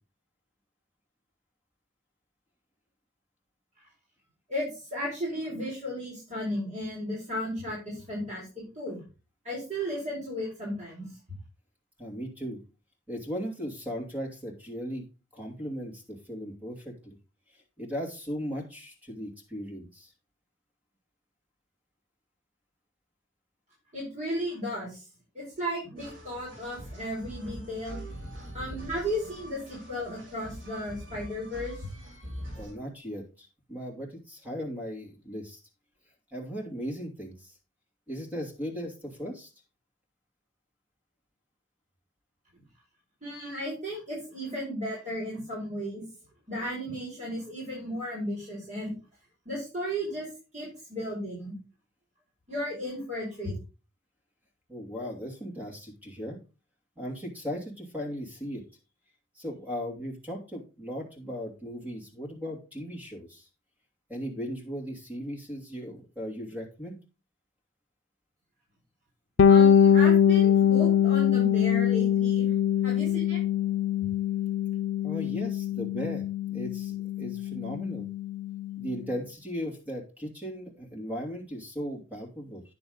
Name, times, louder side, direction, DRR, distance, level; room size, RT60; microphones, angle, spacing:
voice 1, 4.5-9.0 9.4-11.1 23.9-25.0 25.3-28.0 28.5-31.9 43.2-46.0 46.5-49.0 49.5-50.3 50.5-51.5 52.5-53.5 69.5-72.5 72.8-73.4, equal, 40° right, -5 dB, 5.4 m, -34 dB
voice 2, 12.0-12.6 13.1-15.0 15.3-17.2 17.5-20.1 32.5-35.6 36.3-37.6 38.1-39.5 54.7-56.4 57.0-58.6 59.3-63.5 64.1-67.0 75.0-76.2 76.5-78.1 78.8-82.6, equal, 10° right, 0 dB, 2.6 m, -37 dB
sound 1, 26.0-32.7, equal, 85° right, 2.9 m, -43 dB
Bass guitar, 69.4-79.0, left 9 dB, 90° left, 0.5 m, -23 dB
9.8 x 6.9 x 3.9 m, 0.31 s
head